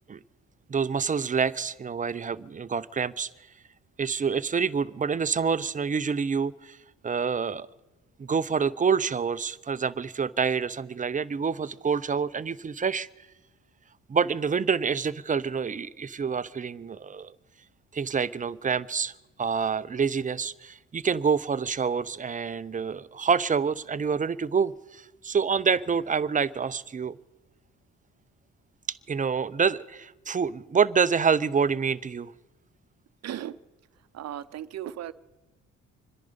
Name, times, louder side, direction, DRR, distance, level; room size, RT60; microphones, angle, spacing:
voice 1, 0.7-3.3 4.0-6.8 7.0-7.7 8.2-13.1 14.1-17.3 17.9-19.1 19.4-27.2 29.1-32.3, right 6 dB, 25° right, 16 dB, 0.6 m, -27 dB
voice 2, 33.2-33.6 34.1-35.1, right 11 dB, 60° right, 14 dB, 0.8 m, -36 dB
26.0 x 10.5 x 5.1 m, 1.1 s
cardioid pair, 90°, 30 cm